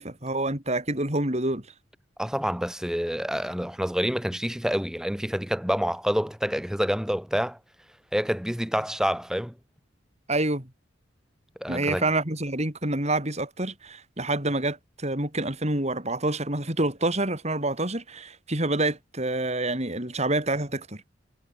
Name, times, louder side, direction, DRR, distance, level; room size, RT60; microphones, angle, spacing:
voice 1, 0.0-1.7 10.3-10.7 11.7-21.0, right 2 dB, 35° right, 5.6 m, -27 dB
voice 2, 2.2-7.6 8.1-9.5 11.6-12.1, equal, 5° right, 4.8 m, -27 dB
head